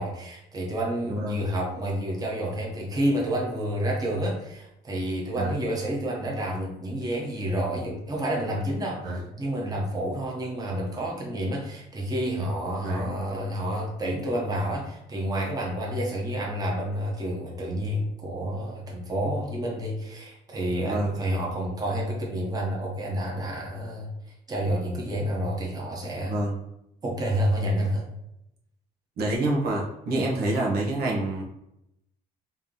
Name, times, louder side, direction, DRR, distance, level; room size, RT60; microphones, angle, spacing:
voice 1, 0.0-9.0 9.4-24.1 24.5-26.4 27.0-28.0, right 1 dB, 20° right, -2 dB, 1.1 m, -29 dB
voice 2, 1.1-1.4 5.4-5.7 9.0-9.2 12.8-13.1 20.8-21.1 26.2-26.6 29.2-31.4, right 1 dB, 65° right, -2 dB, 1.1 m, -27 dB
3.3 x 2.9 x 3.8 m, 0.82 s
cardioid pair, 110°, 17 cm